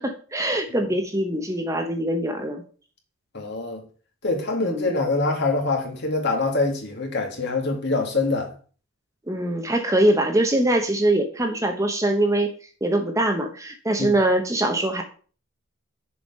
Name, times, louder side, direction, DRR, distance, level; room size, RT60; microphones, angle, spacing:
voice 1, 0.0-2.6 4.6-4.9 9.3-12.5 12.8-15.0, right 1 dB, 15° right, 0.9 m, -23 dB
voice 2, 3.3-3.8 4.2-8.5 14.0-14.1, left 3 dB, 55° left, 2.0 m, -24 dB
6.9 x 4.9 x 5.4 m
head